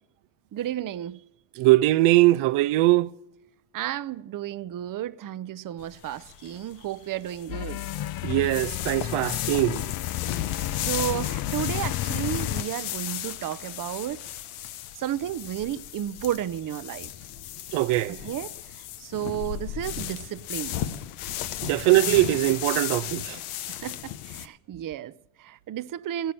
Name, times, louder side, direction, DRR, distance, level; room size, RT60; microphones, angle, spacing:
voice 1, 0.5-1.2 3.7-7.8 10.9-14.2 15.0-17.1 18.1-18.5 19.0-20.8 22.0-22.2 23.7-26.3, right 11 dB, 45° right, 0.6 m, -32 dB
voice 2, 1.6-3.1 8.2-9.9 17.7-18.2 21.6-23.4, right 18 dB, 80° right, 0.6 m, -21 dB
sound 1, 5.8-24.5, left 12 dB, 90° left, 1.0 m, -35 dB
sound 2, 7.5-12.6, left 13 dB, 50° left, 0.6 m, -31 dB
17.0 x 11.5 x 7.0 m
supercardioid pair, 80°, 48 cm